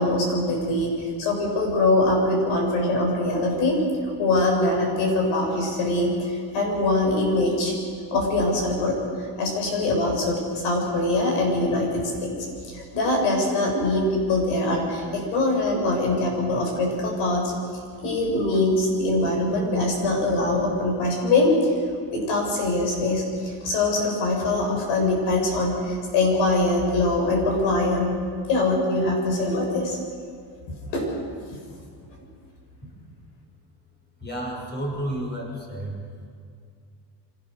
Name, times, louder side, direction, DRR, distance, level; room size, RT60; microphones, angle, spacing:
voice 1, 0.0-3.8 4.2-7.7 8.1-12.3 12.7-17.5 18.0-21.7 22.1-28.2 28.5-30.0 30.9-31.1, left 2 dB, 85° left, 0 dB, 7.0 m, -23 dB
voice 2, 34.2-36.0, right 1 dB, 25° left, 0 dB, 6.7 m, -31 dB
25.0 x 17.5 x 6.7 m, 2.3 s
cardioid pair, 135°, 46 cm